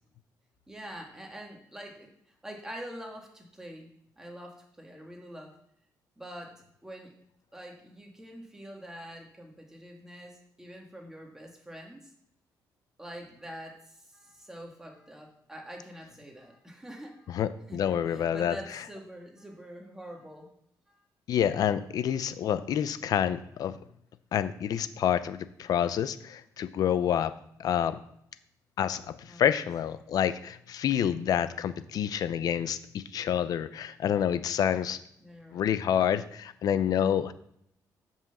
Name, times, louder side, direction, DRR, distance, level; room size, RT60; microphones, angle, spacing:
voice 1, 0.7-3.9 4.2-5.6 6.2-7.2 7.5-12.1 13.0-17.4 17.7-20.5 20.9-21.1 29.3-29.7 35.2-35.7, equal, 5° right, 0 dB, 1.9 m, -45 dB
voice 2, 17.3-18.6 21.3-23.7 24.3-27.3 27.6-28.0 28.8-35.0 35.5-37.3, left 9 dB, 60° left, 13 dB, 0.6 m, -28 dB
7.7 x 5.7 x 7.1 m, 0.74 s
cardioid pair, 145°, 7 cm